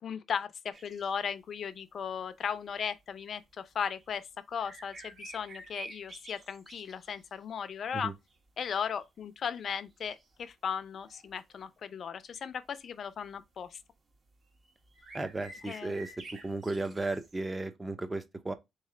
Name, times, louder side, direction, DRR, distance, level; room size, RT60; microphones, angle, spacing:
voice 1, 0.0-8.1 8.6-13.8 15.6-16.1, left 7 dB, 55° left, 0.5 m, -37 dB
sound 1, 0.7-1.1 3.1-3.2 4.0-4.1 4.6-7.4 8.0-8.5 9.0-9.1 10.0-10.4 11.0-11.4 13.2-13.5 14.6-14.7 14.9-17.5, right 3 dB, 45° right, 1.5 m, -49 dB
voice 2, 15.1-18.5, right 2 dB, 20° right, 0.7 m, -35 dB
3.6 x 3.2 x 3.8 m
cardioid pair, 90°, 0 cm